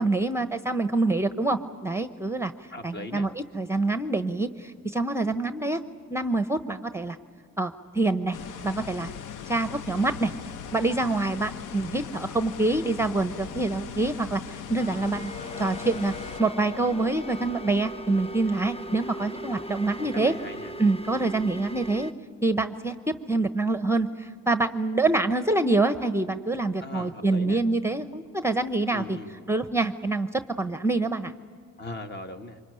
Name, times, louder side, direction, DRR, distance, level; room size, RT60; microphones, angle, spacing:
voice 1, 0.0-3.3 3.5-5.8 6.1-7.2 7.6-8.4 8.6-9.1 9.5-10.3 10.7-15.3 15.6-16.1 16.4-20.3 20.8-22.1 22.4-29.2 29.5-31.3, right 2 dB, 10° right, 10 dB, 0.8 m, -26 dB
voice 2, 2.7-3.3 19.9-20.7 26.8-27.6 28.9-29.3 31.8-32.6, left 2 dB, 35° left, 7 dB, 1.7 m, -39 dB
sound 1, 8.3-16.4, left 8 dB, 90° left, 0.8 m, -39 dB
sound 2, 14.8-22.1, equal, 20° left, 0.8 m, -39 dB
25.0 x 21.5 x 9.8 m, 2.1 s
cardioid pair, 90°, 30 cm